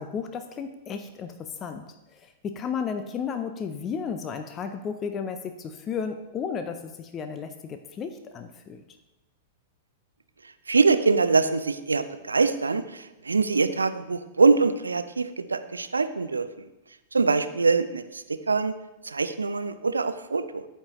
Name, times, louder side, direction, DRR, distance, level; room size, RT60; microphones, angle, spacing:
voice 1, 0.0-1.9 2.1-8.8, left 6 dB, 30° left, 7 dB, 0.5 m, -33 dB
voice 2, 10.7-16.5 17.1-18.8 19.0-20.7, right 4 dB, 85° right, 11 dB, 0.4 m, -24 dB
13.0 x 4.5 x 3.0 m, 1.0 s
figure-of-eight pair, 100°, 0 cm